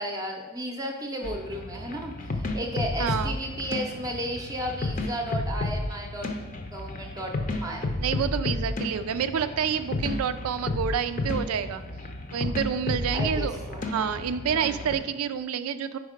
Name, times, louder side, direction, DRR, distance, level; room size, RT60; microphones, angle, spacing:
voice 1, 0.0-6.4 6.7-7.9 13.1-13.8 14.5-14.8, equal, 15° right, 1 dB, 0.6 m, -34 dB
sound 1, 1.2-15.0, left 2 dB, 40° left, 0.6 m, -32 dB
voice 2, 3.0-3.3 8.0-11.8 12.3-13.6 13.9-16.0, right 7 dB, 90° right, 11 dB, 0.4 m, -28 dB
5.2 x 4.8 x 5.1 m, 1.2 s
head